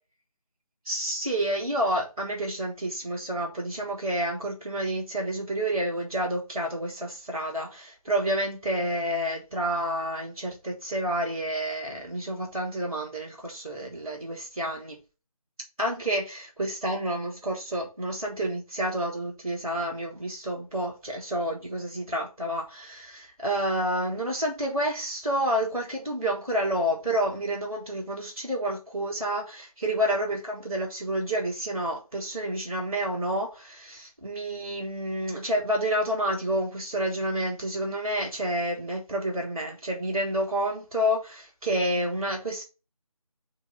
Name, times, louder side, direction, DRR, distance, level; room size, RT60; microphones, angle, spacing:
voice 1, 0.8-15.0 15.8-42.6, right 1 dB, 5° right, 2.1 m, -29 dB
7.9 x 2.9 x 5.3 m
figure-of-eight pair, 180°, 19 cm